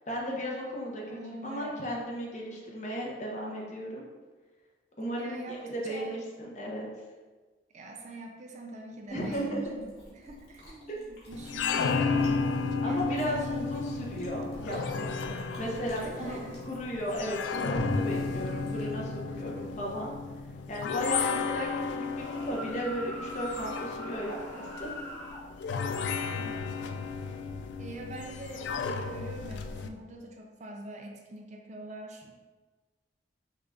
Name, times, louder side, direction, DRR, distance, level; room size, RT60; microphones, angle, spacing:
voice 1, 0.1-4.0 5.0-6.9 9.1-9.6 10.9-11.0 12.8-20.1 20.7-24.9, equal, 40° left, -2 dB, 0.9 m, -35 dB
voice 2, 1.1-1.8 5.2-6.1 7.7-12.6 12.8-13.6 16.0-16.6 21.2-21.5 26.3-26.8 27.8-32.3, right 1 dB, 40° right, 1 dB, 0.5 m, -44 dB
Chewing mastication, 9.1-19.2, equal, 65° left, 1.4 m, -44 dB
sound 1, 11.3-29.9, left 5 dB, 80° left, 0.3 m, -33 dB
sound 2, 22.0-25.5, equal, 10° left, 1.0 m, -43 dB
5.6 x 2.5 x 3.5 m, 1.3 s
head